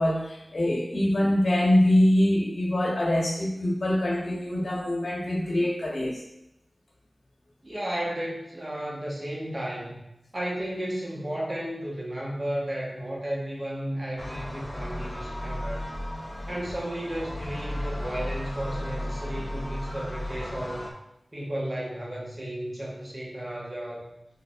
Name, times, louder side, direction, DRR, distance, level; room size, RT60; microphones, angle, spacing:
voice 1, 0.0-6.2 15.6-15.8 16.2-16.4 19.8-20.0 20.4-20.5, left 1 dB, 65° left, -4 dB, 1.4 m, -24 dB
voice 2, 7.6-10.0 10.3-15.8 16.5-20.9 21.3-24.1, right 1 dB, 40° right, -4 dB, 1.3 m, -33 dB
sound 1, 14.2-20.9, left 1 dB, 15° left, 0.7 m, -34 dB
5.6 x 3.7 x 2.5 m, 0.85 s
wide cardioid pair, 75°, 0 cm